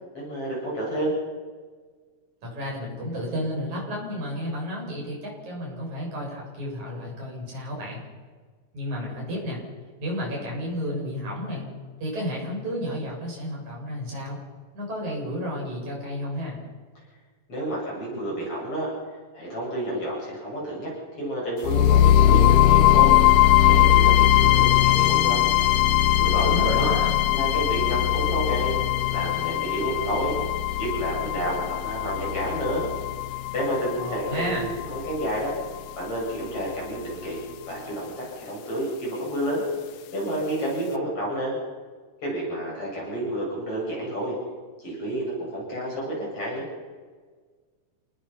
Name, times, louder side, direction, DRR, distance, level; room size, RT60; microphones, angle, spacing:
voice 1, 0.1-1.1 17.5-18.9 19.3-20.9 21.2-23.2 23.6-25.5 26.2-26.8 27.3-28.8 29.1-30.4 30.8-32.9 33.5-35.5 36.0-37.4 37.7-39.6 40.1-41.6 42.2-44.4 44.8-46.7, right 1 dB, 45° left, -4 dB, 8.7 m, -30 dB
voice 2, 2.4-8.0 8.7-9.6 10.0-11.7 12.0-14.4 14.7-16.6 26.4-27.1 34.0-34.7, equal, 65° right, -2 dB, 8.8 m, -31 dB
sound 1, 21.6-35.6, left 13 dB, 90° left, 2.6 m, -20 dB
29.0 x 19.5 x 5.9 m, 1.5 s
omnidirectional pair, 3.7 m